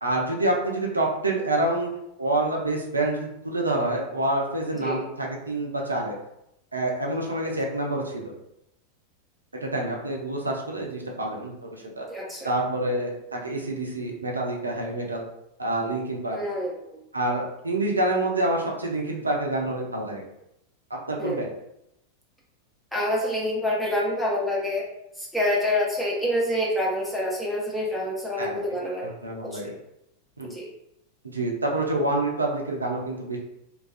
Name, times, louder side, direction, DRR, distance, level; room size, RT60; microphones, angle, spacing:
voice 1, 0.0-6.1 6.7-8.2 9.6-11.5 11.8-12.0 12.4-15.2 15.6-16.4 17.1-20.3 20.9-21.5 28.4-28.6 29.0-29.7 30.4-30.5 31.3-33.4, right 1 dB, 80° right, -1 dB, 0.4 m, -27 dB
voice 2, 12.1-12.5 16.3-16.8 21.2-21.5 22.9-24.9 25.2-29.1 29.4-29.6 30.4-30.7, left 1 dB, 5° left, -4 dB, 0.7 m, -27 dB
2.3 x 2.2 x 2.4 m, 0.82 s
figure-of-eight pair, 90°, 0 cm